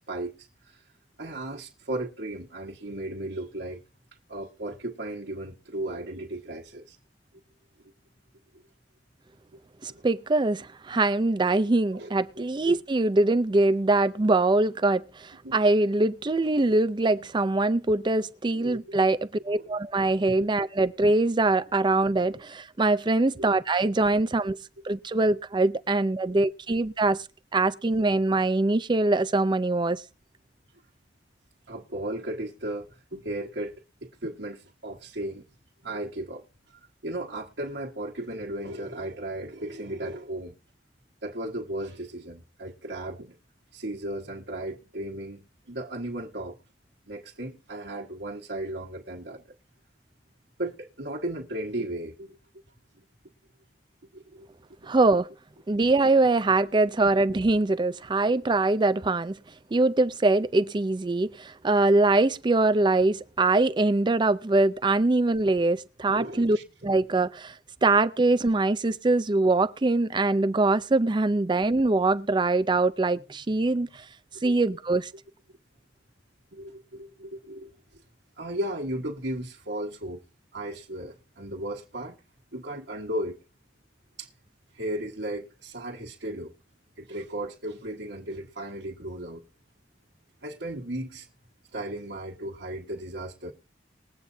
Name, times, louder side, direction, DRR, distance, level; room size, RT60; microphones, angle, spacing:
voice 1, 0.1-0.8 1.2-3.8 4.3-7.0 9.9-10.0 11.9-12.8 15.4-15.7 16.5-16.6 18.5-18.8 19.3-19.7 20.3-20.5 23.4-23.6 26.2-26.4 26.7-26.8 31.7-35.4 35.8-36.4 37.0-40.6 41.2-43.4 43.7-46.6 47.1-49.4 50.6-52.4 54.1-54.5 56.6-56.7 57.0-57.1 66.1-66.6 74.3-74.6 76.5-78.0 78.4-80.2 80.5-82.2 82.5-83.4 84.2-84.3 84.7-86.5 87.0-89.4 90.4-91.3 91.7-93.5, right 1 dB, 75° right, 1.5 m, -35 dB
voice 2, 9.8-24.6 24.8-27.2 27.5-30.0 54.9-55.3 55.7-59.4 59.7-66.6 66.8-67.5 67.8-73.9 74.4-75.1, right 2 dB, 25° right, 0.5 m, -23 dB
21.0 x 8.3 x 2.7 m
head